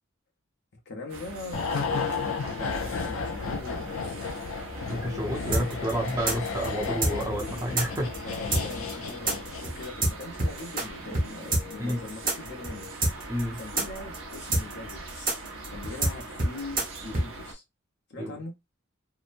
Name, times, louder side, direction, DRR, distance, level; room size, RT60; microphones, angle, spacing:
voice 1, 0.9-1.6 2.5-4.3 8.2-12.9 13.3-15.3 15.7-17.6 18.1-18.5, left 2 dB, 55° left, 1.0 m, -41 dB
sound 1, 1.1-17.5, right 2 dB, 70° right, 0.8 m, -42 dB
sound 2, 1.5-10.1 10.3-10.5, left 5 dB, 80° left, 0.5 m, -33 dB
voice 2, 4.9-8.1 11.8-12.0 13.3-13.6 18.2-18.3, equal, 15° right, 0.7 m, -30 dB
sound 3, 5.5-10.8 11.1-11.3 11.5-17.3, right 2 dB, 45° right, 1.0 m, -26 dB
2.9 x 2.1 x 2.5 m
head